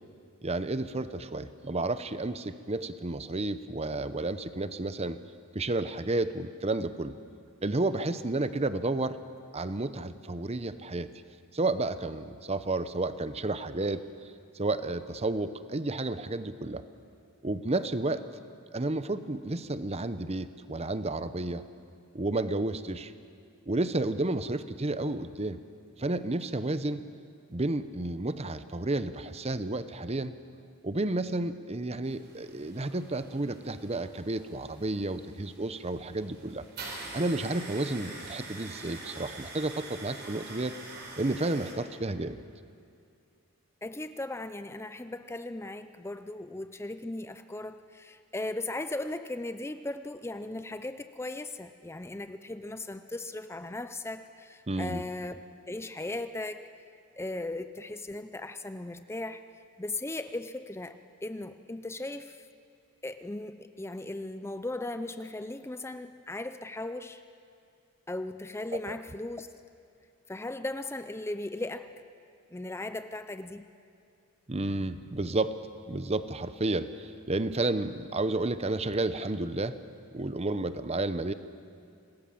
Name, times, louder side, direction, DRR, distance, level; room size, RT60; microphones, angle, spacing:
voice 1, 0.4-5.2 5.5-7.1 7.6-9.2 9.5-11.1 11.5-14.0 14.5-16.8 17.4-18.2 18.7-21.6 22.1-23.1 23.7-25.6 26.0-27.1 27.5-30.3 30.8-36.6 37.1-40.7 41.2-42.4 54.7-55.0 68.9-69.0 74.5-75.6 75.9-79.8 80.1-81.3, right 2 dB, 30° right, 12 dB, 0.8 m, -31 dB
sound 1, 32.0-41.7, right 3 dB, 50° right, 4.3 m, -45 dB
voice 2, 43.8-55.4 55.7-56.6 57.2-59.4 59.8-62.4 63.0-67.2 68.1-69.5 70.3-71.9 72.5-73.7, left 2 dB, 10° left, 10 dB, 0.5 m, -37 dB
26.0 x 20.0 x 7.7 m, 2.4 s
head